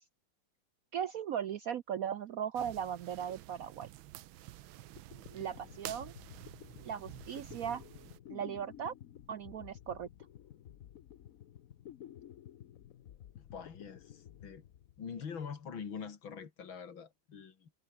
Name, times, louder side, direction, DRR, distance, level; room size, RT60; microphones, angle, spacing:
voice 1, 0.9-3.9 5.3-6.1 6.8-7.8 8.3-8.9 9.3-10.1, right 8 dB, 65° right, 0.8 m, -38 dB
sound 1, 2.6-8.2, right 14 dB, 85° right, 1.5 m, -50 dB
sound 2, 4.7-4.8 5.0-15.4, left 11 dB, 60° left, 1.0 m, -53 dB
voice 2, 13.4-14.6 15.0-17.8, left 6 dB, 80° left, 3.0 m, -44 dB
omnidirectional pair, 2.1 m